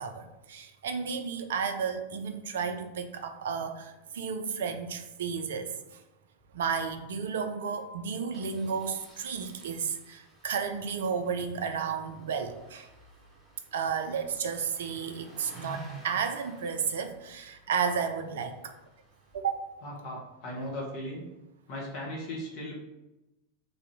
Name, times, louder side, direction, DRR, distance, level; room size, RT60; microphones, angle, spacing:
voice 1, 0.0-6.0 6.5-12.9 13.7-18.8 19.3-19.6, right 6 dB, 60° right, 7 dB, 0.4 m, -33 dB
Engine starting, 6.4-6.7 6.9-7.0 7.3-7.4 8.3-19.4, right 3 dB, 5° right, 1.1 m, -53 dB
voice 2, 19.8-21.2 21.7-22.8, left 1 dB, 45° left, -2 dB, 1.0 m, -37 dB
3.3 x 2.6 x 4.1 m, 0.98 s
figure-of-eight pair, 90°, 0 cm